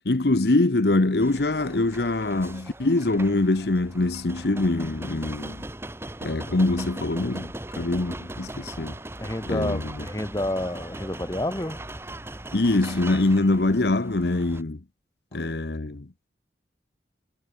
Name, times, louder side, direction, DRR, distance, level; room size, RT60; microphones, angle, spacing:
voice 1, 0.0-5.6 6.2-9.0 9.5-10.0 12.5-14.8 15.3-16.3, left 2 dB, 65° left, 0.9 m, -24 dB
sound 1, 1.2-14.6, right 1 dB, 15° right, 1.2 m, -39 dB
voice 2, 9.2-11.9, left 1 dB, 20° left, 1.3 m, -29 dB
head